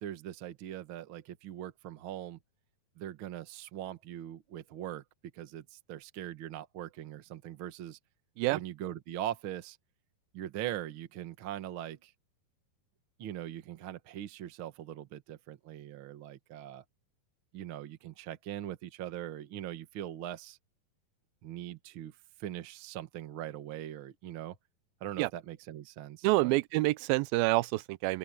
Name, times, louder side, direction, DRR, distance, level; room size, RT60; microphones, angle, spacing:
voice 1, 0.0-2.4 3.0-5.0 5.3-8.0 8.5-9.8 10.3-12.1 13.2-16.8 17.5-20.6 21.4-22.1 22.4-24.6 25.0-26.6, right 12 dB, 60° right, 1.3 m, -41 dB
voice 2, 26.2-28.2, right 20 dB, 90° right, 2.4 m, -27 dB
open air
omnidirectional pair, 4.1 m